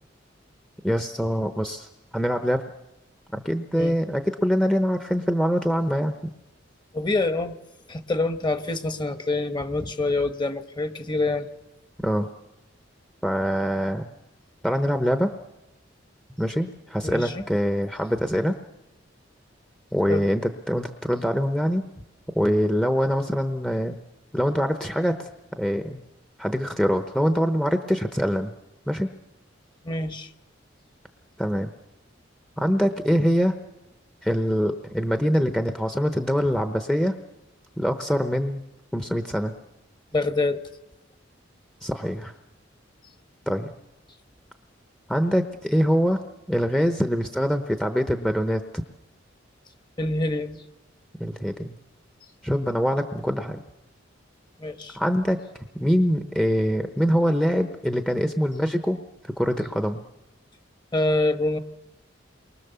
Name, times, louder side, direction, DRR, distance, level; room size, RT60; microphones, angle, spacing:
voice 1, 0.8-1.9 2.1-2.6 3.3-6.1 12.0-12.3 13.2-14.1 14.6-15.3 16.4-18.5 19.9-21.8 22.3-24.0 24.3-25.3 25.6-26.0 26.4-28.5 28.9-29.1 31.4-31.7 32.6-33.6 34.2-37.1 37.8-38.6 38.9-39.5 41.8-42.3 43.5-43.7 45.1-46.2 46.5-48.8 51.2-51.8 52.4-53.6 54.9-55.4 55.7-60.0, equal, 5° left, 7 dB, 0.9 m, -24 dB
voice 2, 6.9-7.5 7.9-11.5 17.0-17.4 20.1-20.3 29.8-30.3 40.1-40.6 50.0-50.6 54.6-55.0 60.9-61.6, left 2 dB, 25° left, 9 dB, 1.2 m, -26 dB
28.5 x 23.5 x 6.9 m, 1.0 s
head